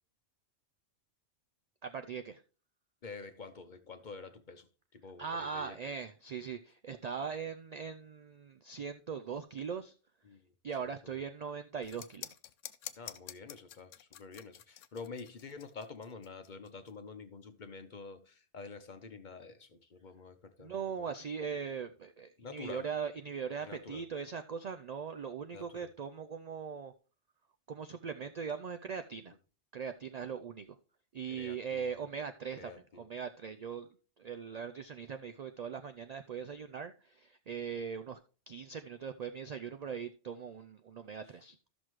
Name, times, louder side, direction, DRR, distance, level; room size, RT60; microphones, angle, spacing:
voice 1, 1.8-2.4 5.2-9.9 10.6-12.3 20.6-26.9 27.7-29.3 29.7-30.8 31.1-38.2 38.5-41.6, right 6 dB, 80° right, 0.3 m, -40 dB
voice 2, 3.0-4.7 4.9-5.9 10.2-10.4 11.0-11.2 13.0-21.1 22.4-22.9 23.6-24.0 25.5-25.9 31.4-32.1 32.5-33.1, left 4 dB, 45° left, 0.8 m, -48 dB
sound 1, 11.8-16.9, left 11 dB, 90° left, 1.0 m, -48 dB
13.5 x 6.1 x 3.1 m
omnidirectional pair, 1.3 m